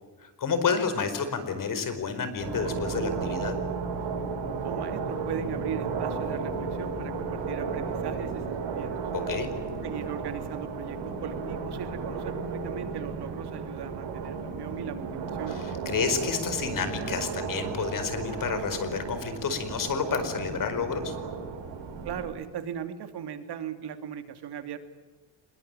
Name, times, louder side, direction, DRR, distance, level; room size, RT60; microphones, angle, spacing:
voice 1, 0.2-3.6 9.1-9.5 15.5-21.2, left 6 dB, 45° left, 10 dB, 4.8 m, -30 dB
sound 1, 2.4-22.3, right 5 dB, 75° right, 8.0 m, -34 dB
voice 2, 4.6-8.9 9.8-15.6 22.0-24.8, right 8 dB, 60° right, 8 dB, 2.8 m, -38 dB
26.5 x 22.0 x 9.0 m, 1.3 s
cardioid pair, 140°, 44 cm